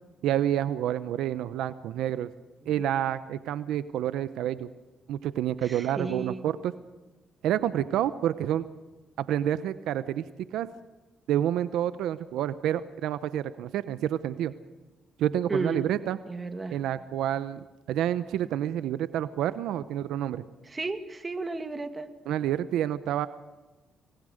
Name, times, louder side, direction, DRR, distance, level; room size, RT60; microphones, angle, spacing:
voice 1, 0.2-2.3 2.7-4.7 5.1-6.7 7.4-8.6 9.2-10.2 10.5-10.7 11.3-14.5 15.2-16.2 16.7-20.4 22.3-23.3, right 11 dB, 85° right, 14 dB, 0.7 m, -28 dB
voice 2, 5.6-6.5 15.5-15.8 16.3-16.8 20.6-22.1, right 3 dB, 25° right, 9 dB, 2.1 m, -33 dB
26.5 x 19.5 x 6.5 m, 1.2 s
cardioid pair, 90°, 0 cm